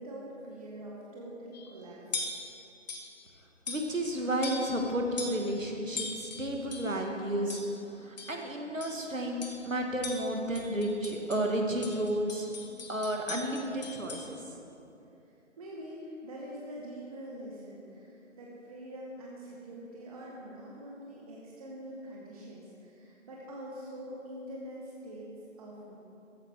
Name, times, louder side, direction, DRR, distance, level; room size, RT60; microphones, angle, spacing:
voice 1, 0.0-2.2 15.2-26.0, equal, 30° right, -4 dB, 1.1 m, -44 dB
sound 1, 1.5-1.7 2.1-2.5 2.9-3.1 3.7-4.1 4.4-4.8 5.2-5.5 6.0-7.0 7.5-7.8 8.2-8.4 8.8-9.0 9.4-9.7 10.0-11.5 11.8-14.3, left 3 dB, 35° left, 1.0 m, -40 dB
voice 2, 3.7-7.6 8.0-12.5 12.9-14.4, right 1 dB, 85° right, 2 dB, 1.6 m, -32 dB
14.0 x 9.0 x 3.5 m, 2.8 s
figure-of-eight pair, 145°, 38 cm